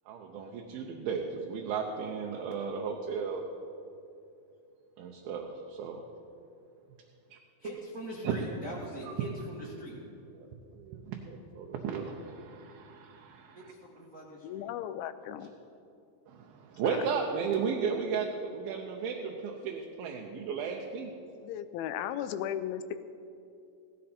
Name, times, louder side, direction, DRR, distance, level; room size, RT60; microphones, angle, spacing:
voice 1, 0.1-3.4 5.0-6.0 7.3-7.4 8.2-8.4 10.3-13.7 16.3-21.1, right 6 dB, 80° right, 1 dB, 2.7 m, -35 dB
voice 2, 7.6-10.0 13.5-14.7, right 1 dB, 40° right, -5 dB, 1.2 m, -42 dB
voice 3, 14.4-15.5 16.8-17.0 21.4-22.9, left 10 dB, 90° left, 11 dB, 2.5 m, -36 dB
16.5 x 13.0 x 4.3 m, 2.6 s
omnidirectional pair, 4.3 m